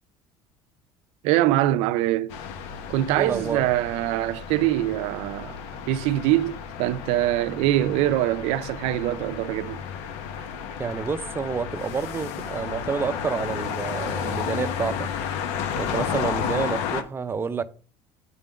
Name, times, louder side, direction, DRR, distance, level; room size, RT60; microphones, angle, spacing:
voice 1, 1.2-2.4 2.9-5.6 5.9-9.8, right 14 dB, 80° right, 0.5 m, -23 dB
sound 1, 2.3-17.0, left 7 dB, 80° left, 0.9 m, -32 dB
voice 2, 3.2-3.6 10.8-15.1 15.8-17.6, right 5 dB, 20° right, 0.5 m, -29 dB
8.4 x 3.6 x 5.1 m
cardioid pair, 120°, 11 cm